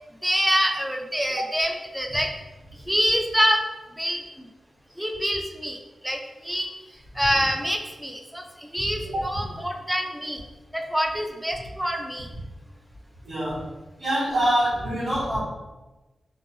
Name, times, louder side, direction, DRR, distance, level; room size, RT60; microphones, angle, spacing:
voice 1, 0.2-2.3 2.9-3.6 4.0-4.2 5.0-5.8 6.0-6.2 6.4-6.7 7.2-10.4 10.7-12.3, equal, 5° right, 2 dB, 0.3 m, -25 dB
voice 2, 13.2-13.7 14.0-15.4, right 1 dB, 90° right, -14 dB, 1.3 m, -25 dB
2.4 x 2.2 x 2.7 m, 1.1 s
wide cardioid pair, 100°, 0 cm